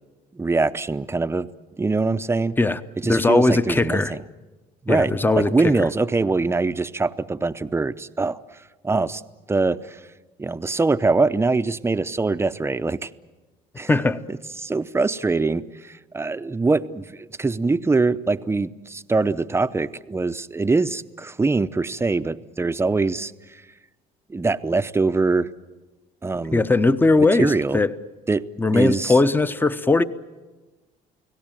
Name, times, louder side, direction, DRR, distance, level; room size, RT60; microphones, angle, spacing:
voice 1, 0.3-1.5 1.8-2.6 3.0-4.2 4.8-8.4 8.8-9.2 9.5-10.0 10.4-13.1 13.8-13.9 14.3-23.6 24.3-25.5 26.2-26.7 27.2-27.8 28.3-28.4 28.7-29.2, right 3 dB, 15° right, 12 dB, 0.7 m, -23 dB
voice 2, 3.1-4.1 4.9-5.5 5.8-5.9 13.9-14.2 26.5-27.9 28.6-30.0, left 3 dB, 10° left, 12 dB, 0.9 m, -19 dB
30.0 x 18.0 x 9.0 m, 1.2 s
cardioid pair, 110°, 17 cm